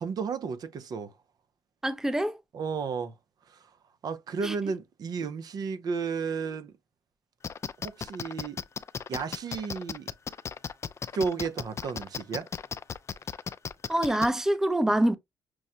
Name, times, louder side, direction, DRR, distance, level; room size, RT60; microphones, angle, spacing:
voice 1, 0.0-1.1 2.5-3.1 3.5-3.6 4.0-6.7 7.8-8.6 9.1-10.1 11.1-12.5, right 5 dB, 60° right, 0.6 m, -33 dB
voice 2, 1.8-2.4 4.4-4.7 13.9-15.1, right 1 dB, 5° right, 0.6 m, -25 dB
sound 1, 7.4-14.3, left 6 dB, 40° left, 0.4 m, -35 dB
6.1 x 2.1 x 2.8 m
cardioid pair, 75°, 8 cm